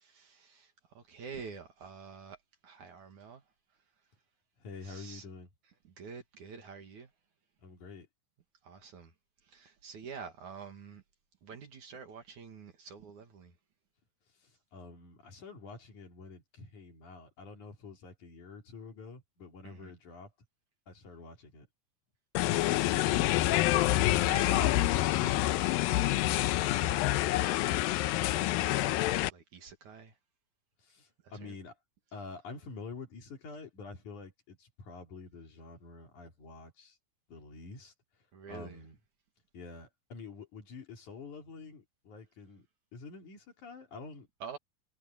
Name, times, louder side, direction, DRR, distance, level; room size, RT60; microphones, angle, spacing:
voice 1, 0.0-2.4 2.6-3.4 4.8-5.3 5.8-7.1 8.6-9.1 9.4-11.0 11.4-13.5 19.6-19.9 22.7-24.0 24.3-30.2 31.2-31.6 38.3-38.8 44.4-44.6, right 6 dB, 55° right, 3.2 m, -48 dB
voice 2, 4.6-5.5 7.6-8.1 14.3-20.3 20.9-21.7 30.8-31.8 32.1-37.0 37.3-37.9 38.5-39.0 39.5-42.7 42.9-44.3, left 4 dB, 55° left, 4.4 m, -48 dB
sound 1, 22.4-29.3, left 16 dB, 80° left, 2.4 m, -27 dB
omnidirectional pair, 4.4 m